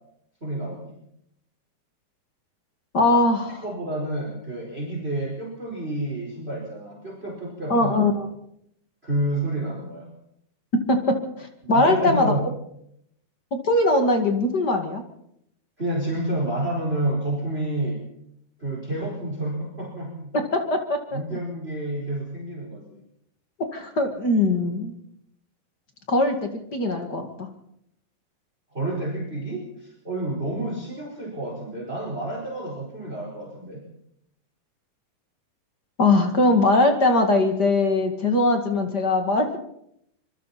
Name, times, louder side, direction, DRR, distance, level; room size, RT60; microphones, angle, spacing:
voice 1, 0.4-1.0 3.1-7.9 9.0-10.1 11.6-12.4 15.8-18.0 18.6-20.3 21.1-23.0 28.7-33.8, right 1 dB, 15° right, -1 dB, 4.7 m, -29 dB
voice 2, 2.9-3.6 7.7-8.3 10.9-11.0 11.4-12.3 13.6-15.0 20.5-21.2 23.7-24.9 26.1-27.5 36.0-39.6, left 2 dB, 35° left, 5 dB, 2.2 m, -21 dB
25.5 x 24.0 x 4.3 m, 0.73 s
omnidirectional pair, 4.0 m